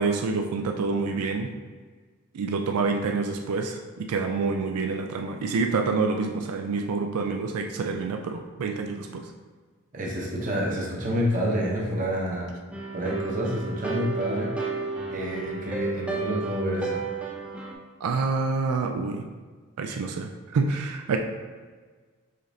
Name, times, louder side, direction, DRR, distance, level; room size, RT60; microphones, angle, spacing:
voice 1, 0.0-1.5 2.3-9.3 18.0-19.3 19.8-21.2, right 4 dB, 90° right, 4 dB, 0.4 m, -27 dB
voice 2, 9.9-12.5 12.9-14.5 15.1-17.0, equal, 35° right, -2 dB, 0.8 m, -28 dB
sound 1, 12.7-17.7, right 3 dB, 5° right, 0.4 m, -32 dB
5.0 x 3.8 x 2.7 m, 1.5 s
head